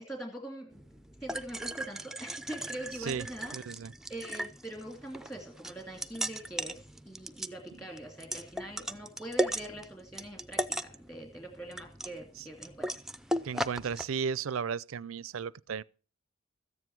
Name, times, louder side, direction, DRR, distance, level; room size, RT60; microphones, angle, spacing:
voice 1, 0.1-0.8 1.2-3.6 4.1-10.6 11.1-13.0, right 1 dB, 15° left, 2.4 m, -43 dB
sound 1, 0.7-14.0, right 1 dB, ahead, 0.5 m, -37 dB
voice 2, 3.5-3.9 13.4-15.8, right 6 dB, 85° right, 0.5 m, -34 dB
14.0 x 9.6 x 4.7 m
head